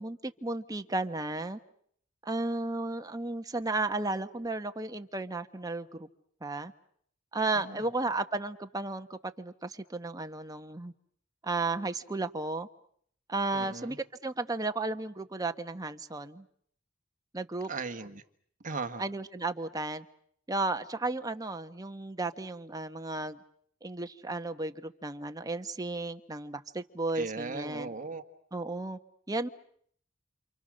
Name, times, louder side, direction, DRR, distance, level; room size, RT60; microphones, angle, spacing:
voice 1, 0.0-1.6 2.2-6.1 6.4-6.7 7.3-10.9 11.4-12.7 13.3-16.4 17.3-17.7 19.0-20.0 20.5-23.4 23.8-27.9 28.5-29.0 29.3-29.5, right 2 dB, 20° right, 8 dB, 1.1 m, -34 dB
voice 2, 13.5-14.0 17.7-18.2 18.6-19.0 27.1-28.2, right 4 dB, 40° right, 7 dB, 1.7 m, -37 dB
28.5 x 28.0 x 6.4 m, 0.64 s
head